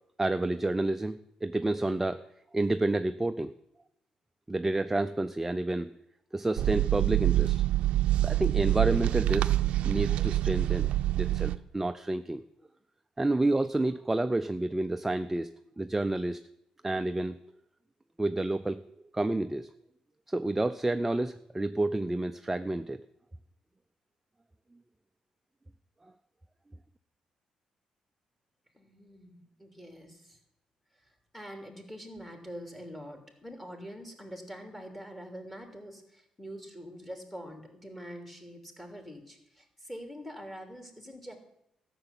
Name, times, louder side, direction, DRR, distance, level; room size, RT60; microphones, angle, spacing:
voice 1, 0.2-2.2 2.5-3.5 4.5-5.9 6.3-7.6 8.2-9.5 9.8-10.9 11.2-12.4 13.2-15.5 15.8-16.4 16.8-17.4 18.2-18.8 19.1-19.7 20.3-23.0, right 2 dB, 10° right, 9 dB, 0.5 m, -29 dB
sound 1, 6.6-11.6, right 14 dB, 80° right, 0.6 m, -26 dB
voice 2, 28.7-30.4 31.0-41.4, equal, 10° left, 4 dB, 3.1 m, -45 dB
13.5 x 6.9 x 9.9 m, 0.80 s
cardioid pair, 115°, 2 cm